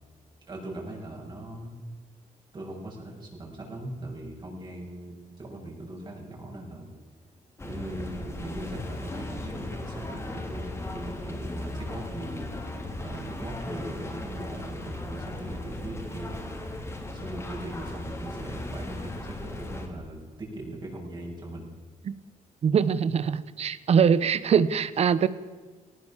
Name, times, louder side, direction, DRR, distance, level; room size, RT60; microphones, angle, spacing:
voice 1, 0.4-1.8 2.5-6.9 7.6-12.5 13.0-16.6 16.8-21.7, right 1 dB, 35° right, -1 dB, 6.7 m, -40 dB
sound 1, 7.6-19.9, left 1 dB, 20° left, 3.3 m, -37 dB
voice 2, 22.6-25.3, right 7 dB, 50° right, 16 dB, 1.0 m, -23 dB
19.0 x 19.0 x 7.4 m, 1.3 s
cardioid pair, 130°, 14 cm